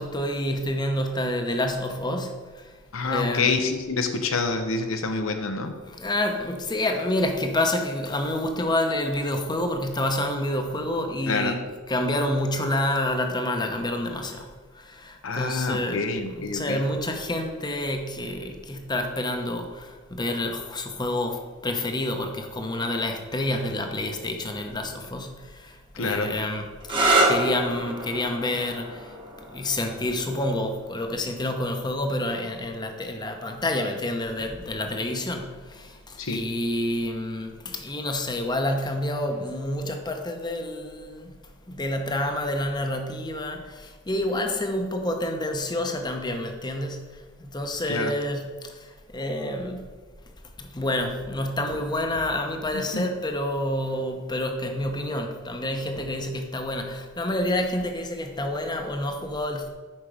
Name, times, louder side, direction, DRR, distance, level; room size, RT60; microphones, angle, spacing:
voice 1, 0.0-2.7 3.0-3.5 5.8-16.0 16.3-29.2 29.5-41.3 41.7-49.9 50.6-59.7, left 1 dB, 20° left, 4 dB, 0.9 m, -28 dB
voice 2, 2.9-5.8 11.3-11.6 15.2-16.9 25.9-26.3 36.2-36.5 47.9-48.1 52.7-53.1, left 3 dB, 80° left, 6 dB, 0.8 m, -27 dB
sound 1, 26.8-34.3 35.3-35.8 39.3-39.6, right 2 dB, 25° right, 1.2 m, -29 dB
8.9 x 5.8 x 5.0 m, 1.4 s
head